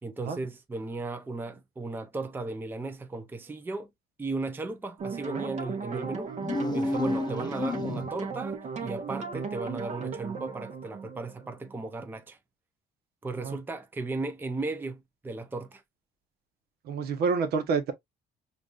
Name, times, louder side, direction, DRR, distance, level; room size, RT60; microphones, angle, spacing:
voice 1, 0.0-3.9 4.2-6.3 6.7-12.4 13.2-15.8, right 3 dB, 10° right, 0.5 m, -36 dB
sound 1, 5.0-12.0, right 5 dB, 45° right, 0.9 m, -36 dB
sound 2, 6.3-8.4, left 2 dB, 25° left, 0.7 m, -31 dB
voice 2, 16.9-17.9, right 5 dB, 70° right, 1.0 m, -28 dB
5.1 x 2.5 x 2.4 m
cardioid pair, 110°, 17 cm